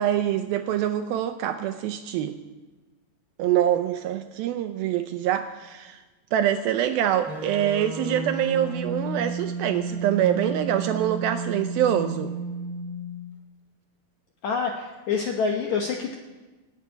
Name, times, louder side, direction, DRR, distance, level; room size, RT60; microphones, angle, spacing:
voice 1, 0.0-2.4 3.4-6.0 6.3-12.3, right 11 dB, 80° right, 8 dB, 2.2 m, -25 dB
sound 1, 7.3-13.3, right 3 dB, 55° right, 1.2 m, -32 dB
voice 2, 14.4-16.1, left 5 dB, 70° left, 2 dB, 1.7 m, -27 dB
19.5 x 7.2 x 9.6 m, 1.2 s
omnidirectional pair, 4.8 m